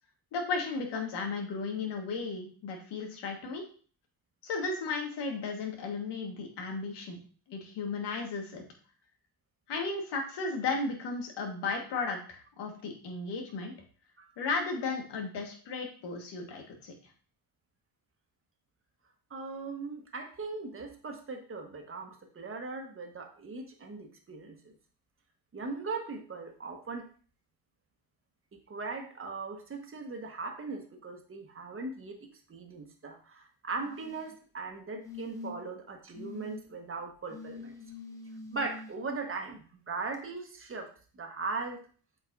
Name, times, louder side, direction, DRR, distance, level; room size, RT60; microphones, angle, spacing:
voice 1, 0.3-3.6 4.4-7.2 7.5-8.7 9.7-13.7 14.4-16.9, left 4 dB, 80° left, 2 dB, 1.7 m, -35 dB
voice 2, 19.3-24.7 25.5-27.1 28.5-37.8 38.5-41.9, right 3 dB, 30° right, 3 dB, 1.4 m, -39 dB
sound 1, 33.8-34.3 35.0-35.7 36.1-36.6 37.3-38.9 40.1-40.2, left 4 dB, 10° left, 1.0 m, -44 dB
8.0 x 4.6 x 2.6 m, 0.41 s
cardioid pair, 105°, 41 cm